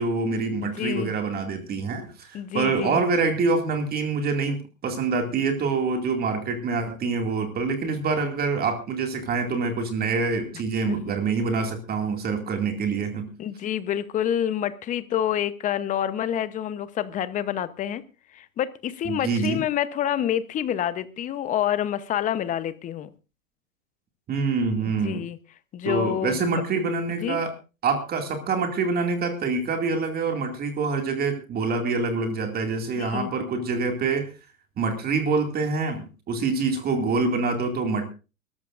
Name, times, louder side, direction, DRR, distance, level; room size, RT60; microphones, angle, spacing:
voice 1, 0.0-13.3 19.0-19.6 24.3-25.2 25.8-27.5 27.8-34.3 34.8-38.1, right 4 dB, 20° right, 5 dB, 2.4 m, -26 dB
voice 2, 0.6-1.1 2.3-3.0 10.9-11.0 13.4-18.0 18.3-23.1 25.0-25.4 25.7-26.6 27.2-27.4 33.0-33.3, left 10 dB, 20° left, 14 dB, 0.9 m, -28 dB
24.0 x 13.5 x 2.6 m, 0.31 s
hypercardioid pair, 130°, 41 cm